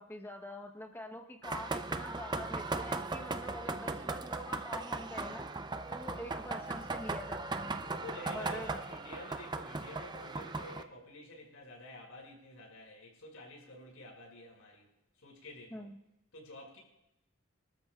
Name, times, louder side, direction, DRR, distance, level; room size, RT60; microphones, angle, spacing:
voice 1, 0.0-5.5 5.9-7.7 8.3-8.8 15.7-16.0, left 1 dB, 10° left, 1 dB, 1.1 m, -45 dB
sound 1, 1.4-10.8, right 3 dB, 20° right, 0.5 m, -38 dB
voice 2, 7.8-14.9 15.2-15.9 16.3-16.8, left 1 dB, 85° left, -1 dB, 6.1 m, -50 dB
25.0 x 13.0 x 2.4 m, 0.88 s
head